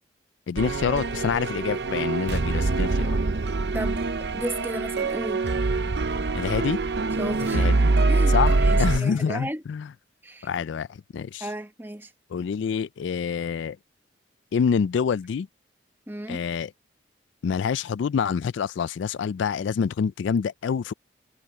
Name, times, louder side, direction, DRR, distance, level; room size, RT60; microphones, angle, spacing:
voice 1, 0.5-3.2 6.3-6.8 7.5-7.9 8.3-9.9 10.4-11.5 12.3-13.8 14.5-15.5 16.3-16.7 17.4-20.9, left 6 dB, 75° left, 0.3 m, -27 dB
sound 1, 0.6-9.0, right 3 dB, 60° right, 0.6 m, -24 dB
voice 2, 3.7-4.1 4.3-5.4 7.2-7.8 8.1-8.4 8.6-9.6 10.2-10.5 11.4-12.1 16.1-16.4, right 1 dB, 10° right, 1.1 m, -34 dB
head